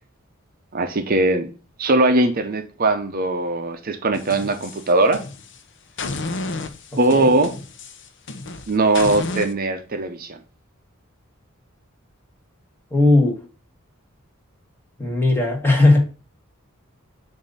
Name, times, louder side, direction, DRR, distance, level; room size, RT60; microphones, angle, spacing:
voice 1, 0.7-1.5 1.8-5.2 6.2-6.4 7.0-7.5 8.7-10.4, right 2 dB, 45° right, 0.6 m, -20 dB
sound 1, 4.1-5.6 6.0-9.5, left 3 dB, 60° left, 0.7 m, -32 dB
voice 2, 12.9-13.4 15.0-16.0, left 2 dB, 10° left, 1.3 m, -17 dB
7.2 x 2.7 x 5.3 m
head